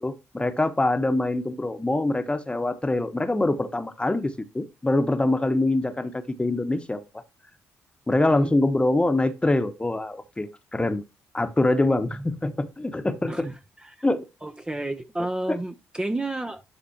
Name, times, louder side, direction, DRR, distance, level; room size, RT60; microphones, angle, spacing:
voice 1, 0.0-7.0 8.1-11.0 11.3-13.5 14.0-14.2 15.5-15.6, left 2 dB, 15° left, 1.2 m, -24 dB
voice 2, 14.4-16.6, right 2 dB, 15° right, 0.8 m, -31 dB
12.0 x 4.3 x 2.9 m
hypercardioid pair, 50°, 6 cm